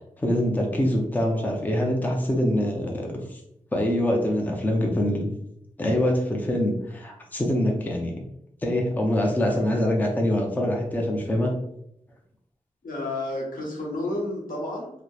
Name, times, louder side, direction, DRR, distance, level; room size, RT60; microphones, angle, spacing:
voice 1, 0.2-3.4 3.7-5.3 5.8-8.1 8.6-11.5, left 1 dB, 10° left, 0 dB, 0.5 m, -24 dB
voice 2, 12.8-14.9, left 1 dB, 85° left, -4 dB, 0.8 m, -31 dB
2.8 x 2.0 x 2.2 m, 0.76 s
wide cardioid pair, 70°, 14 cm